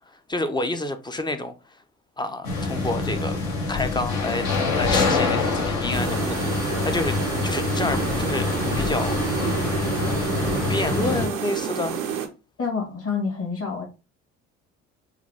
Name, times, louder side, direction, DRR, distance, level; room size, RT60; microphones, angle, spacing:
voice 1, 0.1-1.8 2.2-3.4 3.7-4.5 4.8-7.2 7.4-8.5 8.7-9.1 10.7-12.0, left 2 dB, 10° left, 0.6 m, -29 dB
sound 1, 2.4-11.3, left 3 dB, 60° left, 1.5 m, -25 dB
sound 2, 5.9-12.3, right 7 dB, 85° right, 0.6 m, -29 dB
voice 2, 12.6-13.9, left 5 dB, 35° left, 2.0 m, -27 dB
4.7 x 2.3 x 3.5 m
figure-of-eight pair, 50°, 38 cm